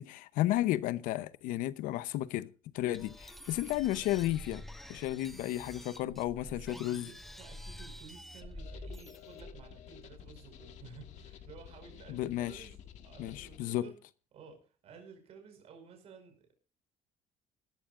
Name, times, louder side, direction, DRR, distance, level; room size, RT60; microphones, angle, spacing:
voice 1, 0.0-4.6 4.9-7.1 12.1-12.7 13.2-13.9, left 14 dB, 90° left, 0.8 m, -33 dB
sound 1, 2.9-9.7, left 1 dB, ahead, 1.1 m, -48 dB
voice 2, 6.0-13.9 14.3-16.5, right 5 dB, 50° right, 5.4 m, -54 dB
sound 2, 8.4-13.6, left 9 dB, 60° left, 1.7 m, -52 dB
18.5 x 13.5 x 2.5 m
cardioid pair, 160°, 14 cm